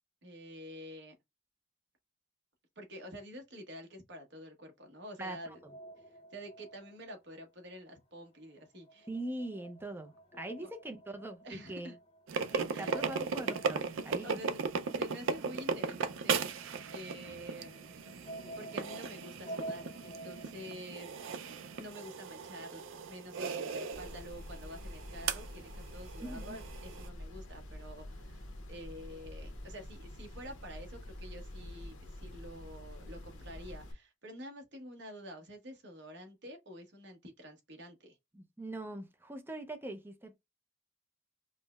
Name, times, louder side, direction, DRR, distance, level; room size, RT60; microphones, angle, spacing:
voice 1, 0.2-1.1 2.8-5.6 6.0-9.1 10.6-10.7 11.4-11.9 12.7-13.0 14.2-14.6 14.9-17.9 18.6-21.4 21.8-38.2, equal, 55° right, 1.0 m, -48 dB
voice 2, 5.2-5.7 9.1-12.0 12.5-14.4 26.2-26.6 38.3-40.4, right 1 dB, 10° right, 0.4 m, -42 dB
sound 1, 5.4-8.0 8.2-22.1, right 1 dB, 25° left, 0.7 m, -50 dB
sound 2, 12.3-27.1, right 5 dB, 70° right, 0.4 m, -37 dB
sound 3, 23.9-33.9, left 1 dB, 75° left, 0.8 m, -47 dB
5.2 x 2.1 x 2.2 m
head